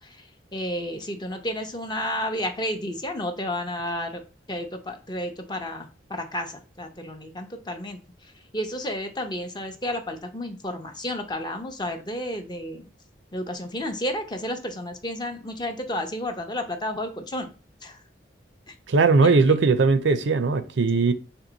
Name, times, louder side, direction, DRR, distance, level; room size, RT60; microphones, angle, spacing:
voice 1, 0.0-4.2 4.5-12.9 13.3-17.5 17.8-18.0 18.7-18.8 19.2-19.3, left 1 dB, 25° left, 0.6 m, -32 dB
voice 2, 18.9-21.1, right 4 dB, 85° right, 0.5 m, -19 dB
4.5 x 3.0 x 3.9 m
head